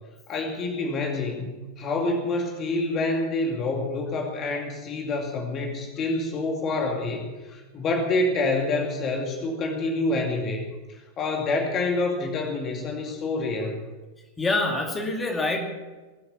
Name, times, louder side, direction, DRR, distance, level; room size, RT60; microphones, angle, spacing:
voice 1, 0.3-1.5 1.8-10.7 11.2-13.9, left 2 dB, 30° left, 2 dB, 2.4 m, -27 dB
voice 2, 14.4-15.6, left 2 dB, 15° left, 2 dB, 2.4 m, -25 dB
20.5 x 8.6 x 7.0 m, 1.2 s
figure-of-eight pair, 90°, 0 cm